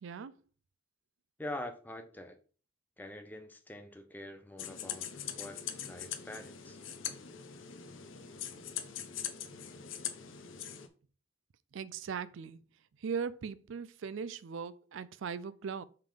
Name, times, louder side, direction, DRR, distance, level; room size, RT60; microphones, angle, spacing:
voice 1, 0.0-0.4 11.7-12.6 13.0-15.8, right 6 dB, 75° right, 0.4 m, -39 dB
voice 2, 1.4-2.4 3.0-6.8, left 1 dB, 10° left, 0.7 m, -45 dB
sound 1, 4.6-10.9, left 9 dB, 80° left, 0.7 m, -42 dB
5.7 x 3.6 x 5.0 m
head